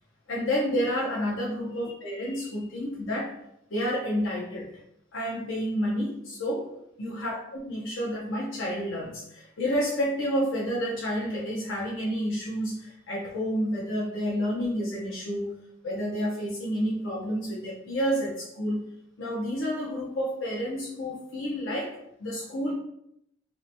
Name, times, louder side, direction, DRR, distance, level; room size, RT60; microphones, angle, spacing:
voice 1, 0.3-3.4 3.7-4.7 5.1-6.7 7.0-15.5 15.8-18.8 19.2-22.7, equal, 85° left, -4 dB, 0.6 m, -30 dB
2.8 x 2.1 x 2.6 m, 0.75 s
head